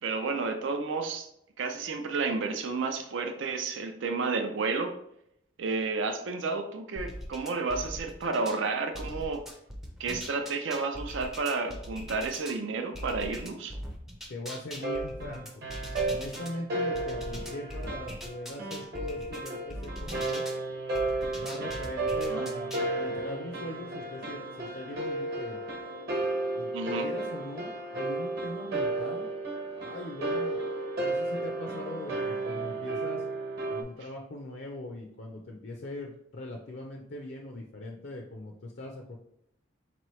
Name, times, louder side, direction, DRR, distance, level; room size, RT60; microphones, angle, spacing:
voice 1, 0.0-1.3 1.6-4.9 5.6-9.4 10.0-13.8 22.3-22.4 26.7-27.1, right 4 dB, 70° right, 6 dB, 0.4 m, -31 dB
sound 1, 7.0-8.6 8.9-12.6 12.9-16.5 16.9-20.6 20.9-22.9, equal, ahead, 0.4 m, -41 dB
voice 2, 14.3-15.6 16.1-20.5 21.3-25.6 26.5-29.3 29.7-30.6 31.0-33.2 33.7-39.2, left 2 dB, 60° left, 1 dB, 0.5 m, -41 dB
sound 2, 14.8-33.8, right 2 dB, 50° right, 1.1 m, -33 dB
4.5 x 3.0 x 3.1 m, 0.76 s
head